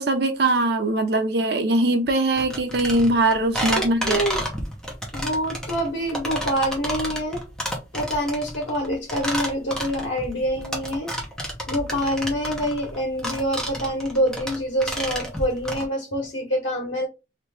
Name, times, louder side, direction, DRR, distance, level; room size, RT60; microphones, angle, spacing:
voice 1, 0.0-4.2, right 2 dB, 60° right, 0.6 m, -21 dB
sound 1, 2.4-15.8, equal, 5° left, 0.8 m, -30 dB
voice 2, 3.8-4.4 5.1-7.4 7.9-11.1 11.7-17.0, equal, 90° left, 1.2 m, -26 dB
2.9 x 2.6 x 3.4 m
head